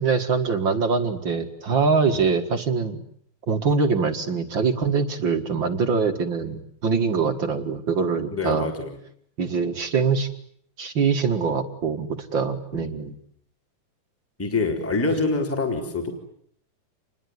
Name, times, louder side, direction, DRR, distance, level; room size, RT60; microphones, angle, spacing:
voice 1, 0.0-3.0 3.5-8.7 9.4-10.3 10.8-13.2 15.1-15.2, right 5 dB, 45° right, 7 dB, 1.8 m, -23 dB
voice 2, 8.3-8.9 12.7-12.8 14.4-16.1, left 3 dB, 5° left, 3 dB, 3.5 m, -25 dB
28.5 x 21.5 x 9.8 m, 0.67 s
omnidirectional pair, 4.3 m